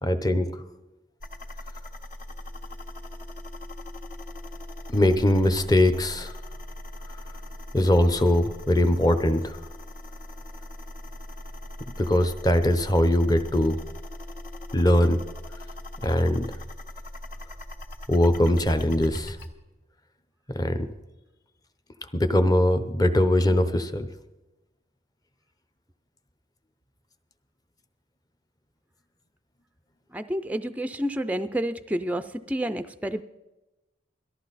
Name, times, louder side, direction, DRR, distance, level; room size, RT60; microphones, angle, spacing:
voice 1, 0.0-0.6 4.9-6.3 7.7-9.6 12.0-13.8 14.7-15.2 16.0-16.5 18.1-19.4 20.5-20.9 22.1-24.1, left 1 dB, 20° left, 10 dB, 0.8 m, -21 dB
sound 1, 1.2-19.5, left 1 dB, 50° left, 1.6 m, -40 dB
voice 2, 30.1-33.2, right 1 dB, 10° right, 10 dB, 0.4 m, -29 dB
18.0 x 13.5 x 4.1 m, 1.0 s
head